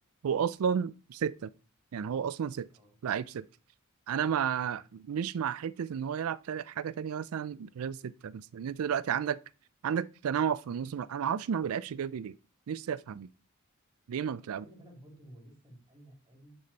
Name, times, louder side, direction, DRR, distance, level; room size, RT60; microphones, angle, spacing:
voice 1, 0.2-1.5 1.9-2.7 3.0-3.5 4.1-9.4 9.8-12.3 12.7-13.3 14.1-14.6, right 8 dB, 75° right, 0.4 m, -32 dB
voice 2, 14.4-16.6, right 1 dB, 20° right, 2.9 m, -54 dB
9.3 x 4.3 x 4.1 m
head